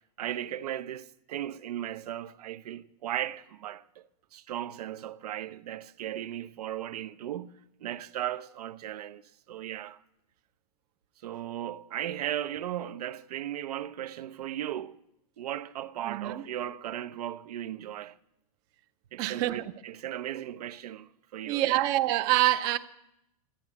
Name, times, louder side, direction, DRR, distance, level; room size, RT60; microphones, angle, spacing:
voice 1, 0.2-9.2 9.5-10.0 11.2-15.0 15.4-18.2 19.1-21.9, right 11 dB, 85° right, 0.8 m, -36 dB
voice 2, 16.0-16.4 19.2-19.6 20.3-20.4 21.5-22.8, right 15 dB, 20° right, 0.4 m, -26 dB
12.5 x 9.3 x 9.9 m
supercardioid pair, 180°, 19 cm